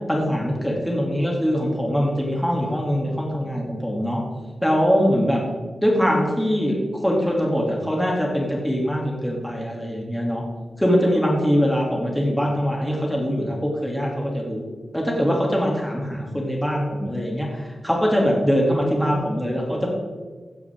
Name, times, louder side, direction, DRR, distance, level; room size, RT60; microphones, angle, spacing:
voice 1, 0.1-4.2 4.6-5.4 5.8-10.4 10.8-14.6 14.9-19.9, equal, 5° left, -2 dB, 2.7 m, -22 dB
16.0 x 9.5 x 3.7 m, 1.4 s
wide cardioid pair, 85°, 0 cm